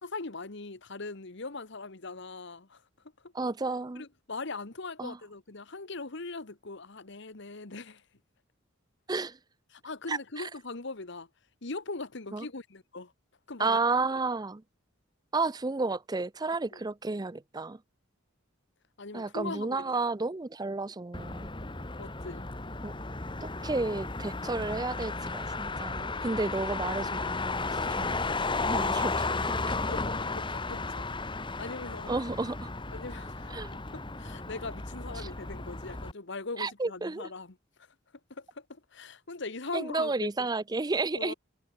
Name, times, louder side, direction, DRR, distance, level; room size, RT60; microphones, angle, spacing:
voice 1, 0.0-2.8 3.9-8.0 9.7-11.3 11.6-13.1 13.5-13.8 16.7-16.8 19.0-19.9 22.0-22.5 29.8-31.1 31.6-32.1 32.9-33.5 33.9-37.5 38.3-40.5 41.1-41.3, left 3 dB, 65° left, 1.5 m, -40 dB
voice 2, 3.3-4.0 5.0-5.2 9.1-9.4 10.1-10.5 12.3-12.5 13.6-14.6 15.3-17.8 19.1-21.5 22.8-22.9 23.4-27.7 28.0-28.2 28.6-29.8 32.1-32.7 33.5-33.7 35.2-35.3 36.6-37.3 39.7-41.3, right 3 dB, 20° right, 0.5 m, -32 dB
Motor vehicle (road), 21.1-36.1, left 3 dB, 25° left, 1.9 m, -34 dB
head